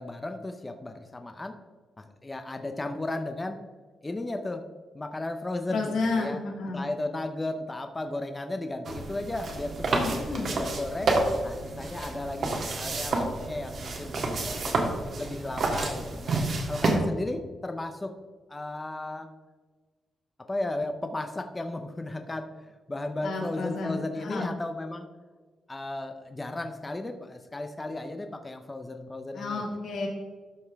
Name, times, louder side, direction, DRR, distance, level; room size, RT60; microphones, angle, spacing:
voice 1, 0.0-1.6 2.0-3.6 4.0-4.6 4.9-6.4 6.7-10.1 10.3-11.2 11.4-14.8 15.2-16.4 16.7-18.2 18.5-19.3 20.4-25.1 25.7-29.6, left 2 dB, 20° left, 6 dB, 0.6 m, -35 dB
voice 2, 5.7-6.8 9.9-10.5 23.2-24.5 29.3-30.1, left 3 dB, 85° left, -1 dB, 2.3 m, -31 dB
sound 1, 8.9-17.0, right 2 dB, 60° right, 1.6 m, -29 dB
12.5 x 5.4 x 3.4 m, 1.4 s
wide cardioid pair, 130°, 0 cm